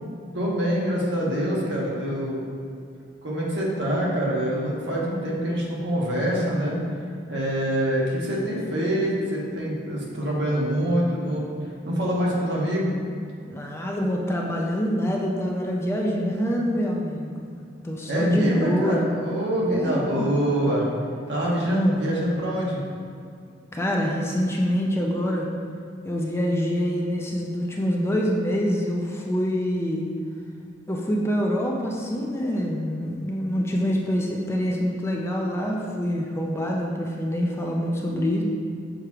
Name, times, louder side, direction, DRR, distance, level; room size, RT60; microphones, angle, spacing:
voice 1, 0.3-2.4 3.2-6.8 7.3-11.5 11.8-12.9 18.1-20.9 21.3-22.8, equal, 65° right, -4 dB, 1.3 m, -25 dB
voice 2, 13.4-17.4 17.8-19.0 19.7-20.3 21.6-22.0 23.7-25.5 26.0-30.1 30.9-38.4, equal, 15° left, -1 dB, 0.4 m, -25 dB
6.6 x 3.0 x 4.7 m, 2.4 s
head